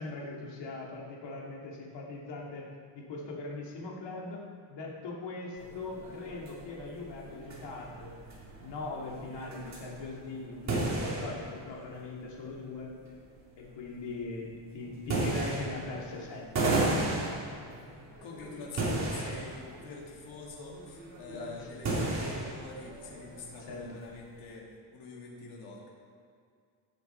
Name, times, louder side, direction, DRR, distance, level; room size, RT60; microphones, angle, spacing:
voice 1, 0.0-2.7 2.9-4.4 4.7-8.2 8.6-12.9 13.6-16.8 21.3-21.7 23.6-24.0, left 3 dB, 60° left, -2 dB, 2.4 m, -40 dB
sound 1, 5.6-24.4, right 2 dB, 35° right, 3.2 m, -35 dB
voice 2, 18.2-25.9, left 3 dB, 80° left, -2 dB, 2.7 m, -45 dB
16.5 x 6.8 x 4.4 m, 2.2 s
cardioid pair, 155°, 48 cm